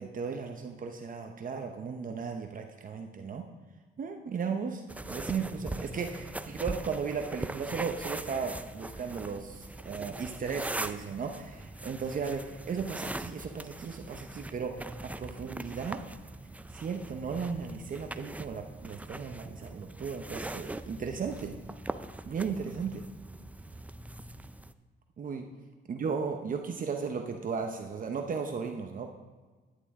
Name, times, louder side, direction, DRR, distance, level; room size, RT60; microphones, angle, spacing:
voice 1, 0.0-3.5 4.0-16.0 16.7-21.5 22.2-23.0 25.2-25.5 25.9-29.1, right 5 dB, 45° right, 4 dB, 0.8 m, -36 dB
sound 1, 4.9-24.7, right 2 dB, 5° right, 0.4 m, -41 dB
11.5 x 9.4 x 3.6 m, 1.4 s
cardioid pair, 90°, 20 cm